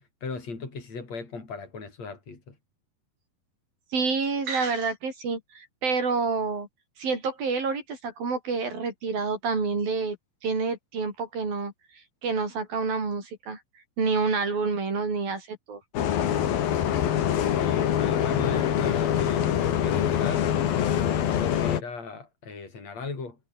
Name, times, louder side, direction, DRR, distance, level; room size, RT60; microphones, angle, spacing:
voice 1, 0.0-2.6 17.6-20.5 21.0-23.4, left 4 dB, 45° left, 7.5 m, -37 dB
voice 2, 3.9-6.7 7.0-10.2 10.4-11.7 12.2-13.6 14.0-15.8, right 4 dB, 80° right, 8.4 m, -28 dB
Bus, 15.9-21.8, left 10 dB, 85° left, 4.0 m, -24 dB
omnidirectional pair, 4.1 m